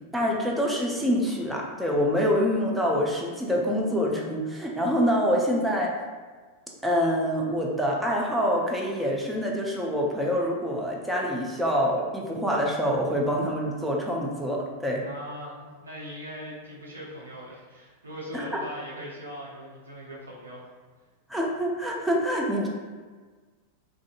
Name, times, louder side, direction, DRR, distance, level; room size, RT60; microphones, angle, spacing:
voice 1, 0.1-5.9 6.8-15.0 18.3-18.5 21.3-22.7, equal, 5° right, -2 dB, 0.4 m, -26 dB
voice 2, 15.0-20.7, equal, 75° right, -5 dB, 0.7 m, -40 dB
2.5 x 2.4 x 2.4 m, 1.4 s
figure-of-eight pair, 90°, 0 cm